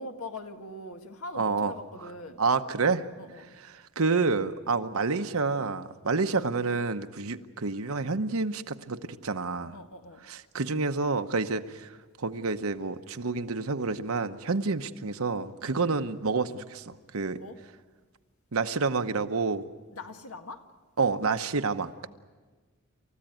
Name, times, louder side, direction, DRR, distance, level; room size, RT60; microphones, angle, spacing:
voice 1, 0.0-2.4 3.2-3.5 9.7-10.2 15.6-15.9 17.3-17.6 19.9-20.6, left 1 dB, 85° left, 5 dB, 1.9 m, -42 dB
voice 2, 1.4-1.7 2.4-3.0 3.7-9.7 10.3-11.9 12.2-17.4 18.5-19.6 21.0-21.9, right 4 dB, 80° right, 8 dB, 1.0 m, -28 dB
28.5 x 14.5 x 9.2 m, 1.3 s
head